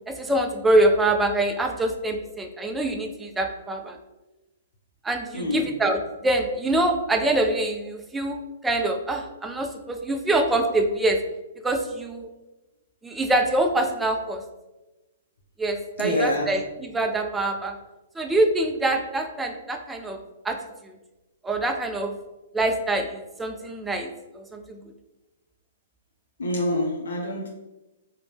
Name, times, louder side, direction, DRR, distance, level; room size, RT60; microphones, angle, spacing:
voice 1, 0.1-4.0 5.0-11.2 11.6-12.3 13.0-14.4 15.6-17.8 18.2-20.2 20.4-20.6 21.4-22.1 22.5-24.1 24.3-24.8, right 1 dB, 10° right, 4 dB, 0.3 m, -24 dB
voice 2, 5.3-5.7 16.0-16.5 26.4-27.5, left 1 dB, 70° left, -1 dB, 0.5 m, -26 dB
2.6 x 2.0 x 3.3 m, 1.1 s
figure-of-eight pair, 115°, 0 cm